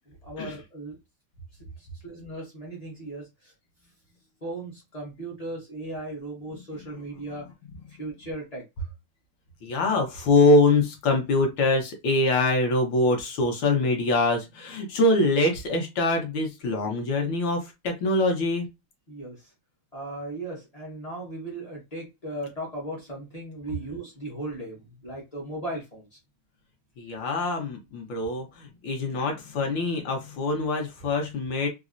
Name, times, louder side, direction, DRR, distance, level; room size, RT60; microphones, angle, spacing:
voice 1, 0.1-1.0 1.8-3.5 4.4-7.5 8.0-8.9 19.1-19.5 19.9-26.1, right 1 dB, 50° left, 0.4 m, -37 dB
voice 2, 9.6-18.7 27.0-31.7, left 2 dB, 70° left, 1.5 m, -24 dB
4.0 x 2.0 x 2.4 m
omnidirectional pair, 2.3 m